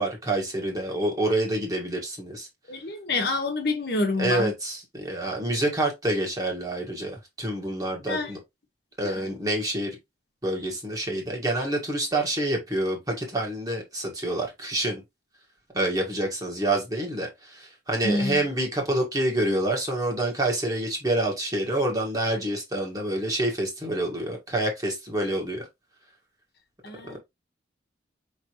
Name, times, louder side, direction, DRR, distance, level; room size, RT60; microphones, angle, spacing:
voice 1, 0.0-2.5 4.2-8.4 9.0-10.0 10.4-15.0 15.7-25.7 27.0-27.2, right 1 dB, 20° right, 1.4 m, -27 dB
voice 2, 2.7-4.5 8.1-8.3 9.0-9.2 18.0-18.4 26.8-27.2, left 2 dB, 55° left, 1.2 m, -27 dB
5.2 x 3.3 x 2.9 m
head